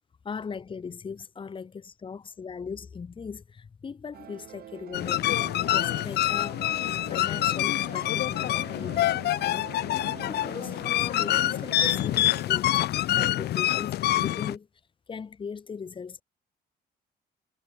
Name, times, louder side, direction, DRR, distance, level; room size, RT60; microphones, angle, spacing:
voice 1, 0.2-9.1 9.4-9.7 10.0-12.8 13.1-14.7 15.1-16.2, left 5 dB, 30° left, 6.2 m, -39 dB
sound 1, 4.1-12.4, right 11 dB, 65° right, 3.3 m, -45 dB
sound 2, 4.9-14.6, left 14 dB, 75° left, 1.0 m, -26 dB
cardioid pair, 160°, 17 cm